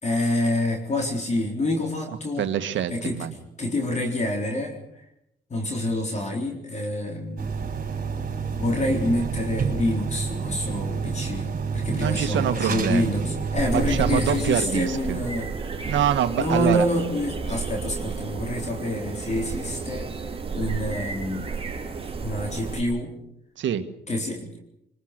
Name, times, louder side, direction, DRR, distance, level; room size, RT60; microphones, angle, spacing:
voice 1, 0.0-2.5 2.9-3.3 3.6-5.0 5.5-7.5 8.6-15.5 16.4-20.2 20.5-21.5 22.2-23.2 24.1-24.6, left 1 dB, 35° left, 2 dB, 4.0 m, -27 dB
voice 2, 2.4-3.3 12.0-13.1 13.7-15.2 15.8-16.8 23.6-23.9, right 9 dB, 70° right, 9 dB, 1.8 m, -25 dB
sound 1, 7.4-14.4, right 5 dB, 45° right, 5.9 m, -29 dB
sound 2, 13.5-22.8, right 5 dB, 30° right, 4.8 m, -32 dB
24.0 x 21.5 x 6.7 m, 0.80 s
cardioid pair, 90°, 20 cm